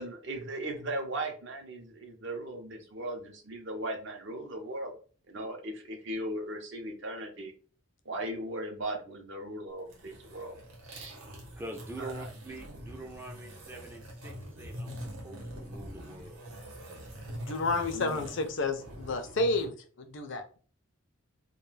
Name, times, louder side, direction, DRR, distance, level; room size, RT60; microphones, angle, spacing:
voice 1, 0.0-4.9 5.3-7.5 8.1-10.6 10.8-11.2 12.0-12.3 17.9-18.2, right 1 dB, 55° right, 4 dB, 0.6 m, -38 dB
sound 1, 9.8-19.7, equal, 80° right, 0.9 m, -44 dB
voice 2, 11.6-16.4, right 2 dB, 10° right, 3 dB, 0.3 m, -45 dB
voice 3, 17.3-20.6, left 2 dB, 60° left, 6 dB, 0.5 m, -31 dB
2.3 x 2.2 x 3.1 m, 0.39 s
head